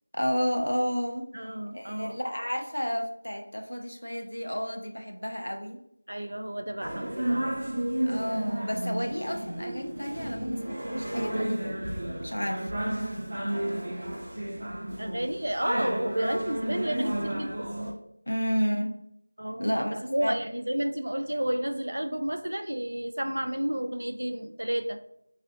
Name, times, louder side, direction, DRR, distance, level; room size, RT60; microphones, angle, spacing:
voice 1, 0.1-1.3 1.7-5.8 8.1-11.9 12.2-13.2 18.3-19.0 19.6-20.3, equal, 85° left, 3 dB, 0.6 m, -31 dB
voice 2, 1.3-2.2 6.1-7.6 15.0-17.7 19.4-19.7 20.0-25.0, right 1 dB, 75° right, 8 dB, 0.4 m, -31 dB
sound 1, 6.8-17.9, right 1 dB, 55° right, 1.1 m, -32 dB
3.7 x 3.2 x 2.6 m, 0.74 s
figure-of-eight pair, 170°, 0 cm